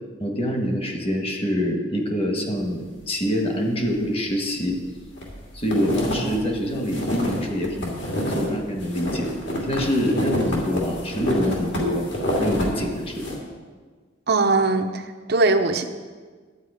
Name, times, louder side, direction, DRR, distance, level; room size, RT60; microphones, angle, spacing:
voice 1, 0.2-4.8 5.5-8.1 8.3-9.3 9.6-12.1 12.4-13.3, equal, 30° left, 2 dB, 1.4 m, -25 dB
sound 1, 4.7-5.3 5.6-8.5 8.8-12.6 13.0-13.3, left 1 dB, 65° left, 2.7 m, -28 dB
voice 2, 14.3-15.0 15.3-15.8, right 3 dB, 50° right, 6 dB, 0.8 m, -20 dB
11.5 x 9.0 x 5.0 m, 1.4 s
head